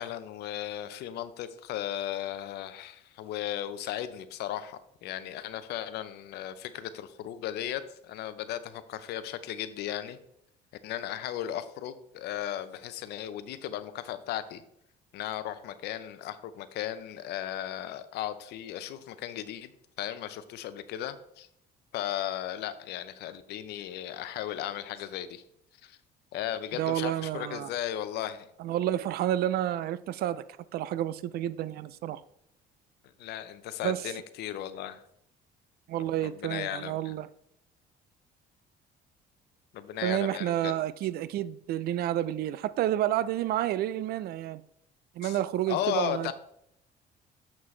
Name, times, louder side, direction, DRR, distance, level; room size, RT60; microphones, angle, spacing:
voice 1, 0.0-10.2 10.8-14.6 15.1-19.7 20.0-21.5 21.9-25.4 25.8-26.0 26.3-28.5 33.2-35.0 36.2-37.1 39.7-40.7 45.2-45.4 45.7-46.3, left 11 dB, 80° left, 13 dB, 0.6 m, -36 dB
voice 2, 26.8-27.7 28.6-30.4 30.7-32.2 33.8-34.0 35.9-37.3 40.0-44.6 45.2-46.3, right 12 dB, 65° right, 16 dB, 0.4 m, -30 dB
7.3 x 6.0 x 3.2 m, 0.76 s
cardioid pair, 110°, 17 cm